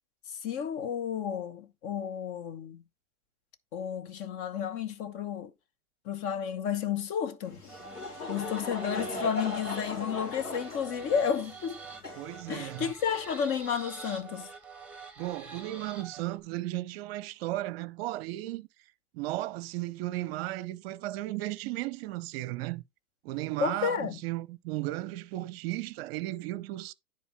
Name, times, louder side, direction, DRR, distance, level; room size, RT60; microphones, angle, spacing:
voice 1, 0.3-2.8 3.7-5.5 6.0-7.6 8.3-11.8 12.5-14.5 23.6-24.2, left 8 dB, 30° left, 1.1 m, -32 dB
Laughter / Crowd, 7.4-13.2, left 3 dB, 90° left, 2.9 m, -39 dB
sound 1, 7.7-16.4, right 4 dB, 5° right, 2.1 m, -46 dB
voice 2, 12.2-12.9 15.2-18.7 19.1-22.8 23.2-26.9, right 17 dB, 45° right, 0.8 m, -35 dB
10.0 x 4.4 x 4.3 m
hypercardioid pair, 115°, 44 cm